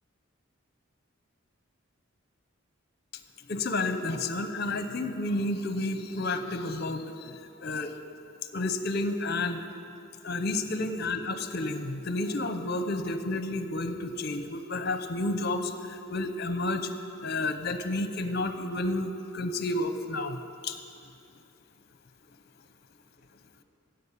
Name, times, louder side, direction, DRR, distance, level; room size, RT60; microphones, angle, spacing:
voice 1, 3.5-7.9 8.5-9.6 10.2-16.9 17.2-20.8, left 2 dB, 50° left, 9 dB, 0.8 m, -31 dB
12.5 x 7.8 x 8.2 m, 2.6 s
head